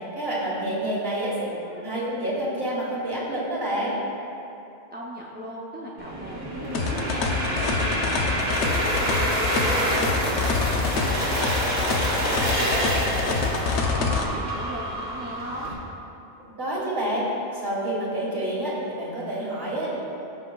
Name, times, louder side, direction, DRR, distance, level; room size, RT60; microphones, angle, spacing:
voice 1, 0.0-1.4 1.8-4.0 16.6-17.3 17.5-20.0, right 1 dB, 60° right, -6 dB, 1.8 m, -28 dB
voice 2, 4.9-11.9 12.2-15.7, equal, 15° right, -5 dB, 0.5 m, -37 dB
sound 1, 6.0-15.7, right 1 dB, 45° right, 1.4 m, -27 dB
sound 2, 6.7-14.2, left 4 dB, 85° left, 1.0 m, -26 dB
15.5 x 5.5 x 2.3 m, 2.8 s
omnidirectional pair, 1.1 m